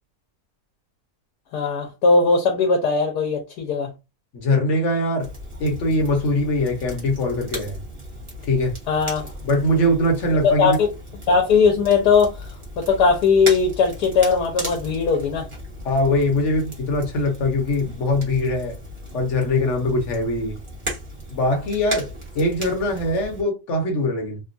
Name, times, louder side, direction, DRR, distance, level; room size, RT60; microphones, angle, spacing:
voice 1, 1.5-3.9 8.9-9.3 10.4-10.9 11.3-15.5, left 5 dB, 90° left, 1.3 m, -19 dB
voice 2, 4.3-5.3 5.6-7.8 8.4-8.7 9.4-10.8 15.8-18.8 19.1-20.6 21.3-22.1 22.3-24.4, left 1 dB, 55° left, 1.1 m, -22 dB
Crackle, 5.2-23.4, equal, 25° right, 0.9 m, -36 dB
3.4 x 2.3 x 2.5 m
omnidirectional pair, 1.7 m